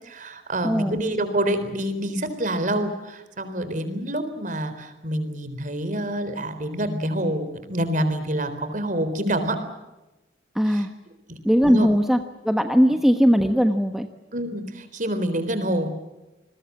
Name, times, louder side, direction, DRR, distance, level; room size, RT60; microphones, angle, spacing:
voice 1, 0.0-9.6 10.7-10.9 11.3-11.4 11.6-11.9 14.3-15.9, right 1 dB, 45° right, 10 dB, 4.0 m, -27 dB
voice 2, 0.6-1.0 10.5-10.9 11.4-14.1, equal, ahead, 6 dB, 1.2 m, -19 dB
28.5 x 21.5 x 7.4 m, 1.0 s
head